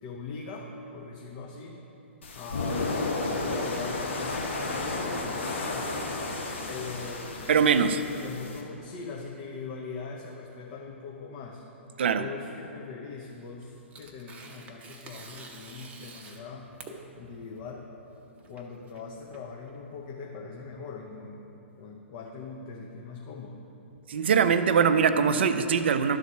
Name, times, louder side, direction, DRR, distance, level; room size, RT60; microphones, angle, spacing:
voice 1, 0.0-1.8 2.3-5.9 6.7-7.5 7.8-11.7 12.1-16.7 17.2-17.9 18.5-23.7, left 4 dB, 40° left, -1 dB, 0.8 m, -41 dB
sound 1, 2.2-8.6, left 2 dB, 65° left, 1.4 m, -32 dB
voice 2, 7.5-8.0 12.0-12.2 24.1-26.2, right 6 dB, 55° right, 10 dB, 0.5 m, -22 dB
Tearing, 13.3-20.0, right 3 dB, 20° right, 0.7 m, -49 dB
11.5 x 4.0 x 6.0 m, 3.0 s
figure-of-eight pair, 115°, 7 cm